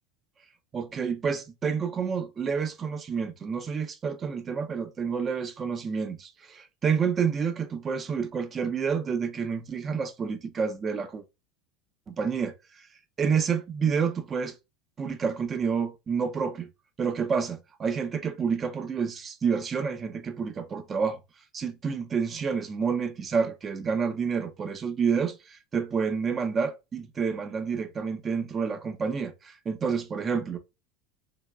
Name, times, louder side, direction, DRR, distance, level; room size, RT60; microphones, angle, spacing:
voice 1, 0.7-11.2 12.1-12.9 13.2-14.6 15.0-16.7 17.0-21.2 21.5-30.6, right 6 dB, 30° right, 0.5 m, -29 dB
2.9 x 2.1 x 2.3 m
hypercardioid pair, 90°, 0 cm